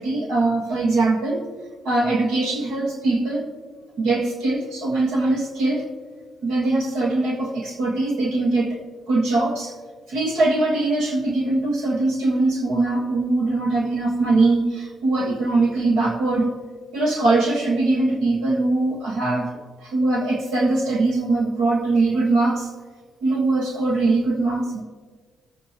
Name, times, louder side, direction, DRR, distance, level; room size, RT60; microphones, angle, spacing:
voice 1, 0.0-1.4 1.8-3.5 4.0-5.9 6.4-8.8 9.1-9.7 10.1-16.5 16.9-22.7 23.2-24.8, right 2 dB, 90° right, -1 dB, 1.5 m, -21 dB
20.5 x 8.7 x 3.0 m, 1.5 s
cardioid pair, 90°, 0 cm